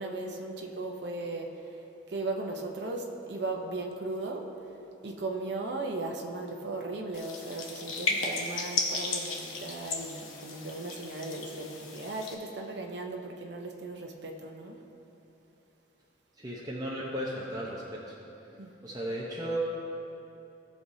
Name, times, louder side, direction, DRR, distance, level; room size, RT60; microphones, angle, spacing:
voice 1, 0.0-1.8 2.1-4.5 5.0-14.8 18.6-18.7, right 2 dB, 60° right, 1 dB, 0.8 m, -37 dB
sound 1, 7.1-12.3, left 3 dB, 80° left, 1.0 m, -35 dB
voice 2, 16.4-18.2 18.8-19.6, equal, 20° right, -5 dB, 0.8 m, -35 dB
17.0 x 6.3 x 2.8 m, 2.9 s
head